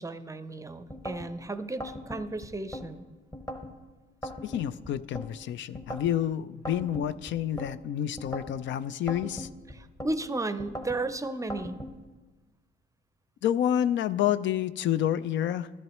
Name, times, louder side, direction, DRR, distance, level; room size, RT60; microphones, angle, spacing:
voice 1, 0.0-3.0 9.7-11.8, right 2 dB, 15° right, 11 dB, 0.5 m, -34 dB
sound 1, 0.9-1.3 1.8-2.9 3.3-3.7 4.2-5.3 5.7-6.2 6.7-7.7 8.2-8.6 9.1-10.1 10.6-11.0 11.5-11.9, equal, 15° left, 1.1 m, -39 dB
voice 2, 4.4-9.5 13.4-15.7, left 10 dB, 70° left, 15 dB, 0.4 m, -29 dB
13.0 x 11.0 x 3.1 m, 1.3 s
cardioid pair, 90°, 20 cm